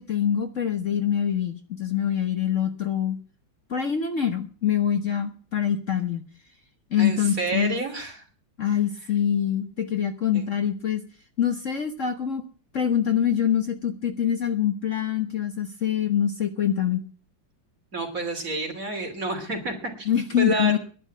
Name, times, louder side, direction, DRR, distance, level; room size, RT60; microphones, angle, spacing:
voice 1, 0.0-3.2 3.7-6.2 6.9-7.8 8.6-11.0 11.4-12.4 12.7-17.0 20.0-20.8, left 9 dB, 45° left, 7 dB, 1.4 m, -25 dB
voice 2, 7.0-8.2 10.3-10.5 17.9-20.1 20.4-20.8, right 2 dB, 45° right, 3 dB, 3.5 m, -29 dB
11.0 x 9.9 x 8.4 m, 0.41 s
omnidirectional pair, 2.0 m